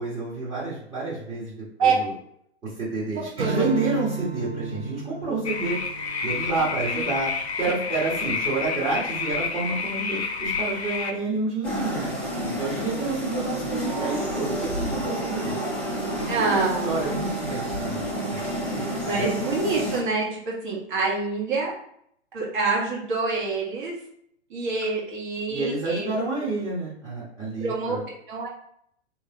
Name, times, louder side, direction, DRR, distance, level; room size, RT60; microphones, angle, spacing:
voice 1, 0.0-1.5 1.8-2.1 2.6-5.8 6.2-7.3 7.6-12.1 12.4-15.6 16.1-18.5 18.7-19.3 25.5-28.0, right 3 dB, 15° right, -9 dB, 1.2 m, -29 dB
Strum, 3.4-8.1, right 6 dB, 70° right, 0.7 m, -35 dB
sound 1, 5.4-11.1, left 5 dB, 70° left, 0.6 m, -29 dB
sound 2, 11.6-20.0, equal, 5° left, 0.4 m, -29 dB
voice 2, 16.3-17.1 19.1-21.7 22.3-24.0 24.5-26.1 27.6-28.0 28.3-28.5, right 4 dB, 45° right, -4 dB, 1.5 m, -26 dB
3.3 x 3.2 x 2.9 m, 0.69 s
figure-of-eight pair, 110°, 33 cm